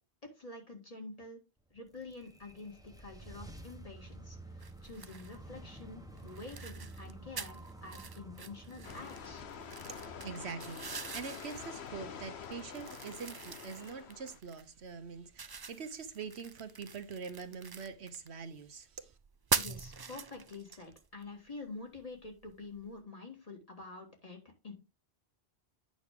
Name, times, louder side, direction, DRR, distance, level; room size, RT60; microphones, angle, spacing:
voice 1, 0.4-1.4 1.7-4.4 4.8-9.4 19.5-24.7, left 3 dB, 35° left, 2.2 m, -47 dB
Freezing Logo, 1.7-11.0, right 2 dB, 5° right, 0.9 m, -51 dB
sound 1, 4.6-23.0, right 5 dB, 40° right, 0.3 m, -43 dB
sound 2, 8.8-14.4, left 7 dB, 80° left, 1.1 m, -47 dB
voice 2, 9.9-19.2, right 5 dB, 85° right, 1.3 m, -44 dB
8.8 x 6.2 x 3.6 m
omnidirectional pair, 1.1 m